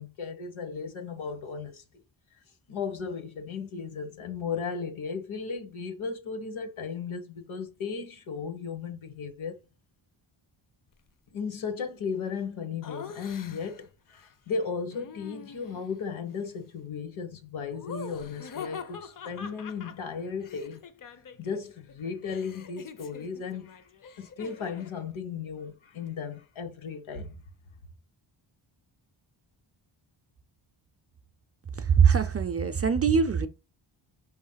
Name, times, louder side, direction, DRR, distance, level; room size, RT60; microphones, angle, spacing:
voice 1, 0.0-1.8 2.7-9.6 11.3-20.8 21.4-23.8 24.2-27.3, left 5 dB, 80° left, 1.3 m, -35 dB
Laughter, 12.8-13.9 14.9-15.9 17.7-21.6 21.9-25.0, left 6 dB, 45° left, 0.5 m, -44 dB
voice 2, 31.8-33.5, right 6 dB, 35° right, 0.4 m, -22 dB
5.4 x 3.1 x 5.6 m
wide cardioid pair, 160°, 47 cm